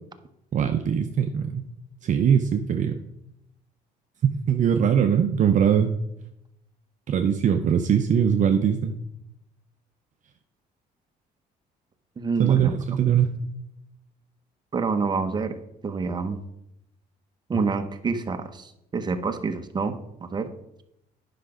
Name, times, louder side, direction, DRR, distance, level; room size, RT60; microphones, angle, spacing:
voice 1, 0.5-1.7 2.0-3.0 4.2-5.9 7.1-9.0 12.4-13.4, right 8 dB, 50° right, 6 dB, 0.6 m, -21 dB
voice 2, 12.2-12.8 14.7-15.6 15.8-16.4 17.5-20.5, right 4 dB, 25° right, 7 dB, 1.0 m, -27 dB
10.0 x 5.9 x 5.0 m, 0.82 s
cardioid pair, 110°, 17 cm